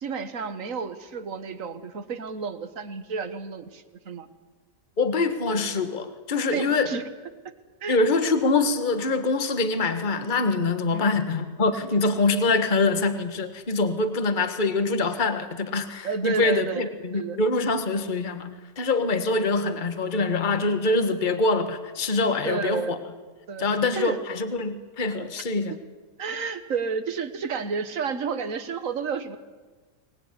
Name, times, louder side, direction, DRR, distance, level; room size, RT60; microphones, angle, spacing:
voice 1, 0.0-4.3 6.5-7.0 7.8-8.0 10.9-11.2 16.0-17.4 22.4-23.0 23.5-23.7 23.9-24.2 26.2-29.4, right 5 dB, 50° right, 11 dB, 1.7 m, -31 dB
voice 2, 5.0-6.9 7.9-23.0 23.6-25.8, left 3 dB, 30° left, 9 dB, 1.6 m, -24 dB
24.5 x 19.5 x 9.9 m, 1.4 s
omnidirectional pair, 1.9 m